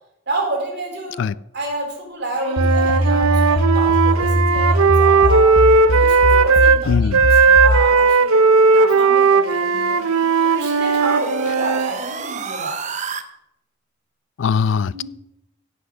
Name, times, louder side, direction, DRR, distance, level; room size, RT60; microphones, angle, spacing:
voice 1, 0.3-1.3 1.5-5.5 5.9-8.4 8.7-10.0 10.4-12.8 14.9-15.0, right 2 dB, 50° right, 3.4 m, -29 dB
Wind instrument woodwind instrument, 2.4-6.8 7.1-11.9, right 4 dB, 85° right, 0.7 m, -16 dB
sound 1, 2.6-7.9, left 1 dB, 80° left, 1.0 m, -20 dB
voice 2, 6.9-7.2 14.4-15.0, left 6 dB, 55° left, 0.3 m, -20 dB
sound 2, 9.3-13.2, right 5 dB, 35° right, 0.7 m, -32 dB
16.0 x 5.7 x 6.2 m
head